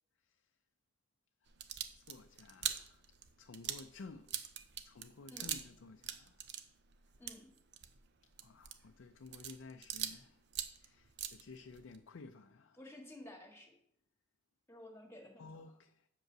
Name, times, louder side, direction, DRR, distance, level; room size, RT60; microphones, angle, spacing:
sound 1, 1.5-5.8 6.0-10.2 10.5-12.0, right 10 dB, 60° right, 0.7 m, -43 dB
voice 1, 2.0-3.0 3.4-4.4 4.8-6.4 8.4-10.4 10.8-12.8 15.4-16.1, left 3 dB, 80° left, 0.5 m, -54 dB
voice 2, 7.2-7.5 12.7-13.7 14.7-15.5, left 1 dB, 15° left, 1.8 m, -53 dB
7.6 x 5.3 x 6.1 m
head